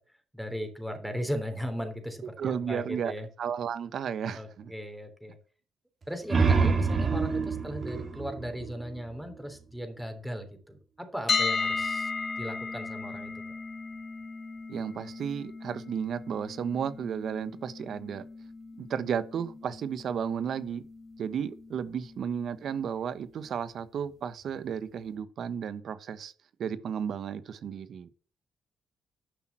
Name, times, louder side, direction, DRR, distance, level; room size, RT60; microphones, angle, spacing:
voice 1, 0.3-3.3 4.3-5.4 6.1-12.1 12.4-13.3, equal, 5° right, 3.4 m, -37 dB
voice 2, 2.4-3.1 3.4-4.7 14.7-18.2 18.8-20.8 21.2-26.3 26.6-28.1, right 7 dB, 65° right, 1.2 m, -33 dB
sound 1, 6.0-9.5, right 4 dB, 40° right, 2.8 m, -27 dB
sound 2, 11.3-23.2, left 4 dB, 35° left, 3.8 m, -36 dB
12.0 x 5.9 x 7.5 m
cardioid pair, 90°, 0 cm